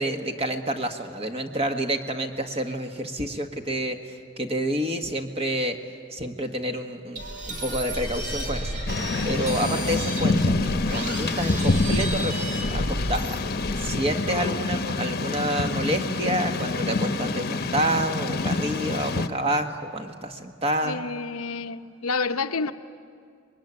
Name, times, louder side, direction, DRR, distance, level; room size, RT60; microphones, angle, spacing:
voice 1, 0.0-5.8 6.1-8.7 9.2-13.4 13.8-21.0, right 1 dB, 30° right, 1.6 m, -28 dB
sound 1, 7.2-14.0, right 1 dB, 50° right, 4.0 m, -32 dB
Thunder / Rain, 8.9-19.3, left 3 dB, 45° left, 1.0 m, -27 dB
voice 2, 20.8-22.7, left 4 dB, 90° left, 0.9 m, -29 dB
25.5 x 21.5 x 9.9 m
head